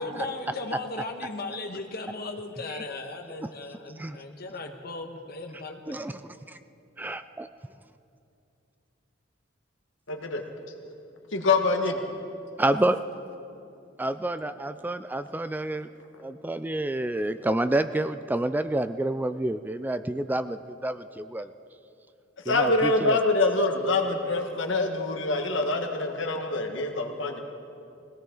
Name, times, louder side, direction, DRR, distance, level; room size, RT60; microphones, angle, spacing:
voice 1, 0.0-6.0, left 3 dB, 55° left, 4 dB, 1.4 m, -37 dB
voice 2, 7.0-7.5 12.6-13.0 14.0-15.9 16.2-21.5 22.5-23.2, right 1 dB, 10° right, 11 dB, 0.3 m, -28 dB
voice 3, 10.1-10.4 11.3-12.0 22.4-27.4, left 3 dB, 70° left, 4 dB, 1.5 m, -25 dB
21.5 x 17.0 x 3.9 m, 2.6 s
head